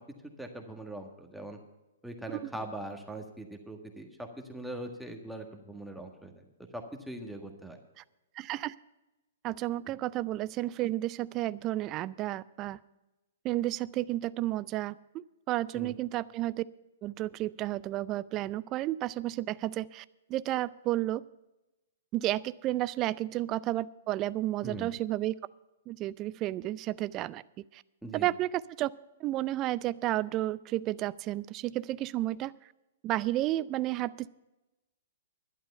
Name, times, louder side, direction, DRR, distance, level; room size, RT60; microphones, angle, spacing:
voice 1, 0.4-1.6 2.0-6.5 6.7-7.8 9.9-10.0 15.7-15.9 24.6-24.9 28.0-28.3, right 1 dB, ahead, 3 dB, 1.7 m, -41 dB
voice 2, 8.4-8.7 9.4-12.8 13.4-16.6 17.0-20.0 20.3-21.2 22.1-25.4 25.9-27.4 27.7-27.8 28.1-28.9 29.2-32.5 33.0-34.3, right 15 dB, 30° right, 18 dB, 0.4 m, -32 dB
11.5 x 11.5 x 5.5 m, 1.0 s
hypercardioid pair, 120°, 0 cm